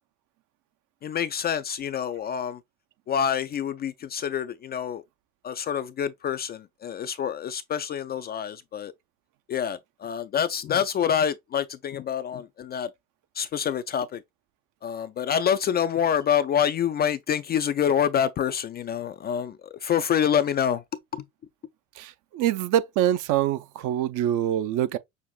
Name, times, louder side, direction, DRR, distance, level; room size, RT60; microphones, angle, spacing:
voice 1, 1.0-2.6 3.1-5.0 5.4-8.9 9.5-12.9 13.4-14.2 14.8-20.8 21.1-21.2, left 8 dB, 25° left, 0.3 m, -26 dB
voice 2, 22.0-25.0, right 11 dB, 50° right, 0.6 m, -25 dB
6.3 x 2.6 x 2.3 m
hypercardioid pair, 75°, 39 cm